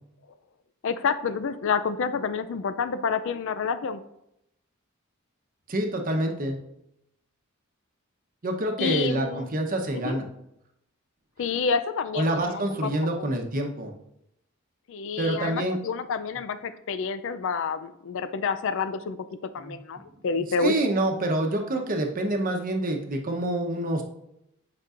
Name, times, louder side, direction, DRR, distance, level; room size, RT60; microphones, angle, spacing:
voice 1, 0.8-4.0 8.8-9.5 9.9-10.2 11.4-12.9 13.2-13.3 14.9-20.7, left 5 dB, 65° left, 12 dB, 0.4 m, -29 dB
voice 2, 5.7-6.6 8.4-10.3 12.1-13.9 15.2-15.8 19.6-19.8 20.6-24.0, right 1 dB, 45° right, 3 dB, 0.9 m, -27 dB
8.0 x 5.3 x 2.5 m, 0.81 s
head